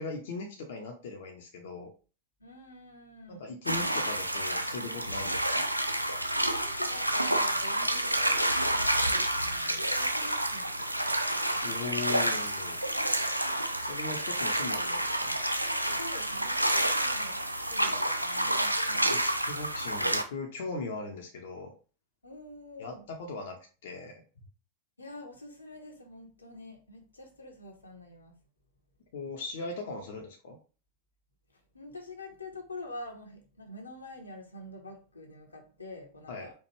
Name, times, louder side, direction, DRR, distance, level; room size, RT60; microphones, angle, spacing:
voice 1, 0.0-1.9 3.3-5.6 11.6-13.0 13.8-15.3 19.0-21.7 22.8-24.2 29.1-30.6 36.3-36.5, left 3 dB, 55° left, 2 dB, 0.7 m, -39 dB
voice 2, 2.4-3.4 6.5-11.1 15.9-19.3 22.2-23.0 25.0-28.3 31.7-36.5, left 1 dB, 80° left, 1 dB, 0.9 m, -47 dB
sound 1, 3.7-20.2, right 1 dB, 90° right, 0.4 m, -29 dB
4.5 x 2.4 x 3.1 m, 0.36 s
figure-of-eight pair, 90°, 0 cm